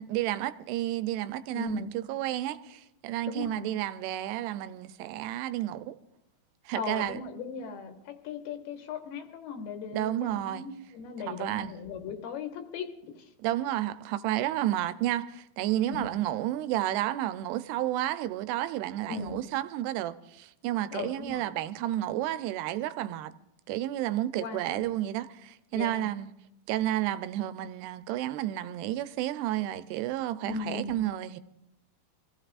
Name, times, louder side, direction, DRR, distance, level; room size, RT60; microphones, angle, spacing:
voice 1, 0.0-6.0 6.7-7.2 9.9-10.7 11.3-11.7 13.4-23.3 23.7-26.3 26.7-31.4, right 13 dB, 85° right, 2.7 m, -31 dB
voice 2, 1.5-1.9 3.3-3.7 6.7-13.3 15.9-16.1 19.1-19.4 20.9-21.5 24.4-24.9 25.7-26.1 30.5-31.1, left 6 dB, 80° left, 3.1 m, -38 dB
25.5 x 15.5 x 2.5 m
omnidirectional pair, 4.6 m